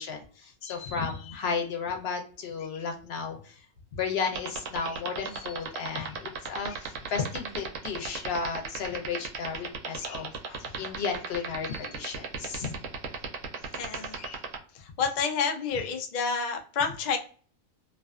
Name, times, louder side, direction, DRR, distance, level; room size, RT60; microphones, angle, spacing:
voice 1, 0.0-3.7 3.9-10.3 10.6-12.7, left 5 dB, 60° left, 4 dB, 0.8 m, -33 dB
sound 1, 4.2-14.6, right 8 dB, 75° right, 0.9 m, -34 dB
voice 2, 10.0-10.9 13.7-14.4 14.7-17.2, left 5 dB, 85° left, 4 dB, 0.4 m, -31 dB
2.5 x 2.4 x 2.3 m, 0.42 s
omnidirectional pair, 1.3 m